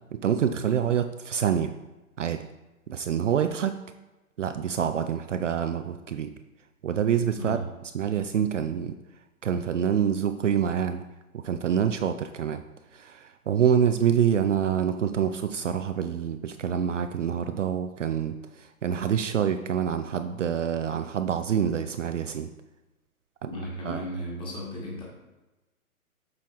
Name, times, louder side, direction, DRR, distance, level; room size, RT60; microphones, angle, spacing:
voice 1, 0.1-1.7 2.2-2.4 2.9-3.8 4.4-6.3 6.8-7.6 7.9-8.9 9.4-11.0 11.4-12.6 12.9-22.5 23.4-23.5 23.9-24.0, right 8 dB, 60° right, 9 dB, 0.5 m, -26 dB
voice 2, 7.4-7.7 23.5-25.0, equal, 10° left, -4 dB, 1.7 m, -35 dB
7.6 x 5.5 x 3.1 m, 1.1 s
figure-of-eight pair, 125°, 43 cm